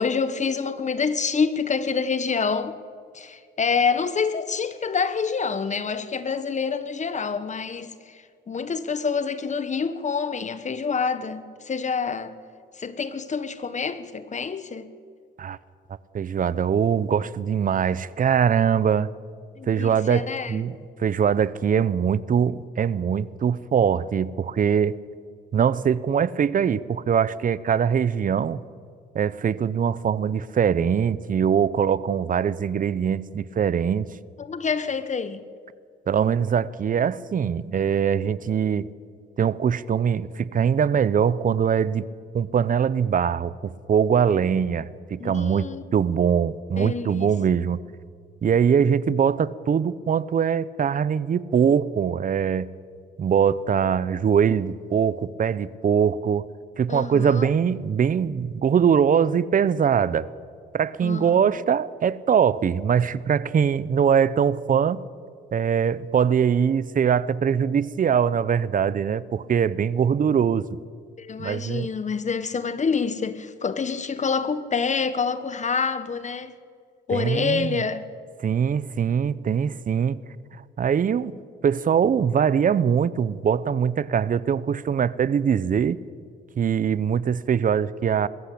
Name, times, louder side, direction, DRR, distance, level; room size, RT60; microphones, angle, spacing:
voice 1, 0.0-2.8 3.1-12.3 12.8-14.9 19.5-20.6 34.4-35.4 45.2-45.8 46.8-47.3 56.9-57.5 61.0-61.4 71.2-76.5 77.1-78.0, left 5 dB, 35° left, 1.2 m, -27 dB
voice 2, 16.1-19.1 19.7-25.0 25.5-28.6 29.1-34.1 36.1-38.9 39.4-42.0 42.3-47.8 48.4-52.7 53.2-56.5 56.8-60.3 60.7-65.0 65.5-70.8 71.4-71.9 77.1-77.8 78.4-80.2 80.5-86.0 86.6-88.3, right 7 dB, 45° right, 0.8 m, -22 dB
22.0 x 14.0 x 8.6 m
cardioid pair, 90°, 20 cm